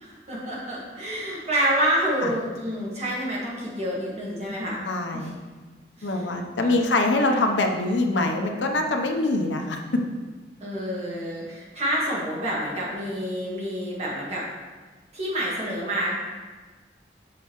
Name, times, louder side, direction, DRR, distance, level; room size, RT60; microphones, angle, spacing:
voice 1, 0.0-4.8 5.1-5.3 6.0-6.9 10.6-14.4 15.1-16.2, equal, 40° right, -5 dB, 1.8 m, -28 dB
voice 2, 4.8-5.3 6.0-10.0, left 2 dB, 85° left, 3 dB, 0.7 m, -24 dB
7.6 x 5.6 x 3.0 m, 1.4 s
head